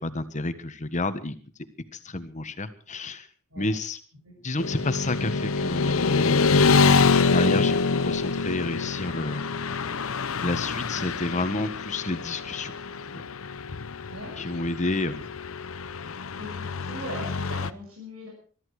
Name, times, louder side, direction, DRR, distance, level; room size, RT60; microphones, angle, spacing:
voice 1, 0.0-1.4 1.9-3.3 3.6-4.0 4.4-6.9 7.3-9.5 10.4-12.7 13.1-13.2 14.4-15.2, left 2 dB, 35° left, 11 dB, 1.4 m, -30 dB
Motorcycle / Traffic noise roadway noise, 4.6-17.7, left 4 dB, 75° left, 0.8 m, -26 dB
voice 2, 16.4-18.3, equal, 85° right, -3 dB, 7.1 m, -39 dB
22.0 x 13.5 x 4.8 m, 0.43 s
head